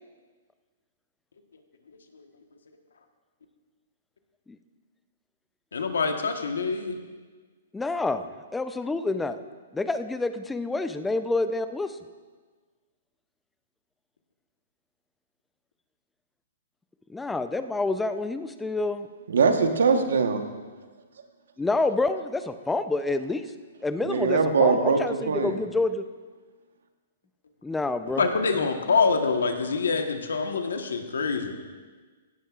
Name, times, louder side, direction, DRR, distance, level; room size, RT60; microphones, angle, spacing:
voice 1, 5.7-7.0 28.2-31.5, left 4 dB, 85° left, 5 dB, 1.2 m, -25 dB
voice 2, 7.7-8.2 8.5-9.4 9.7-12.0 17.1-19.1 21.6-23.4 23.8-26.0 27.6-28.2, left 3 dB, 5° left, 10 dB, 0.5 m, -28 dB
voice 3, 19.3-20.4 24.0-25.6, right 5 dB, 80° right, 6 dB, 1.2 m, -22 dB
16.0 x 12.0 x 2.5 m, 1.4 s
hypercardioid pair, 135°, 0 cm